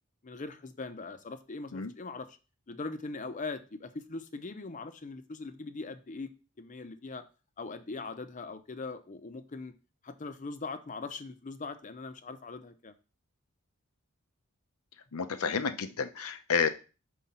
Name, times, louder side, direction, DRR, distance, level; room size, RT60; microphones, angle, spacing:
voice 1, 0.2-2.4 2.7-6.3 6.6-7.2 7.6-9.7 10.0-12.9, left 3 dB, 35° left, 10 dB, 0.6 m, -41 dB
voice 2, 15.1-16.7, left 6 dB, 90° left, 10 dB, 0.7 m, -30 dB
5.5 x 4.8 x 4.2 m, 0.33 s
head